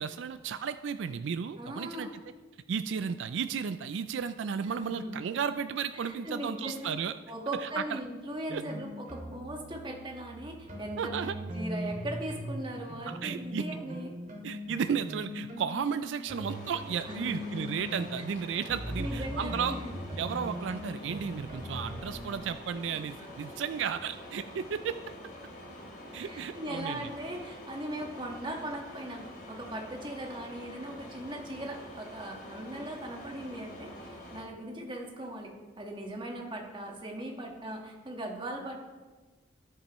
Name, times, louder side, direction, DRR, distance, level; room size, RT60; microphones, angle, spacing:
voice 1, 0.0-2.1 2.7-7.1 7.6-8.0 8.5-8.6 11.0-11.4 13.1-13.7 14.4-19.8 20.2-25.0 26.1-27.0, right 7 dB, 85° right, 11 dB, 0.4 m, -34 dB
voice 2, 1.6-2.1 4.6-5.2 6.1-6.9 7.3-14.1 17.1-17.4 19.0-19.9 22.9-23.0 26.2-38.8, right 1 dB, 25° right, 1 dB, 1.5 m, -39 dB
sound 1, 8.5-12.6 12.9-22.4, equal, 45° right, 2.4 m, -40 dB
sound 2, 16.4-34.4, left 1 dB, 55° left, 2.9 m, -47 dB
13.0 x 10.5 x 3.1 m, 1.3 s
head